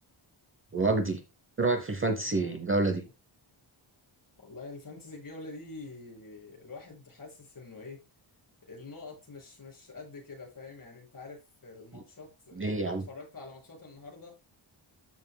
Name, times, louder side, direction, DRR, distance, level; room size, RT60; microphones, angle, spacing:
voice 1, 0.7-1.2 1.6-3.0 12.6-13.0, right 3 dB, 25° right, 0.9 m, -27 dB
voice 2, 2.2-3.1 4.4-8.0 8.6-14.4, left 3 dB, 45° left, 6.0 m, -46 dB
13.5 x 6.3 x 2.2 m
wide cardioid pair, 165°, 48 cm